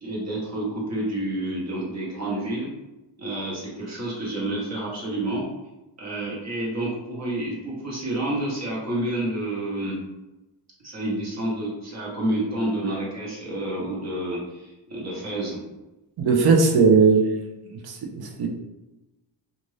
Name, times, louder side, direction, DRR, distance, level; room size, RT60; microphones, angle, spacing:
voice 1, 0.0-2.7 3.2-5.4 6.0-9.9 10.8-15.6, right 1 dB, 35° right, -5 dB, 1.2 m, -29 dB
voice 2, 16.2-17.4 17.8-18.5, right 4 dB, 60° right, 2 dB, 0.7 m, -18 dB
2.6 x 2.5 x 3.2 m, 1.0 s
cardioid pair, 105°, 44 cm